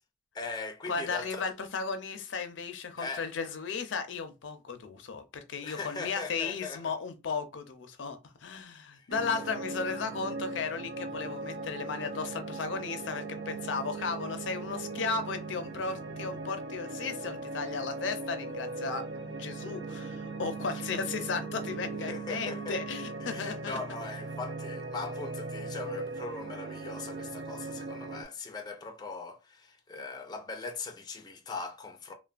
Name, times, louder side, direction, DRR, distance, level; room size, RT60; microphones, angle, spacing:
voice 1, 0.3-1.5 3.0-3.3 5.6-6.8 9.0-9.1 20.7-20.8 22.1-22.8 23.2-32.1, left 3 dB, 20° left, 0.4 m, -40 dB
voice 2, 0.9-19.1 19.4-23.8, left 5 dB, 80° left, 0.5 m, -35 dB
sound 1, 9.1-28.2, right 3 dB, 70° right, 0.5 m, -39 dB
3.1 x 2.1 x 2.4 m
head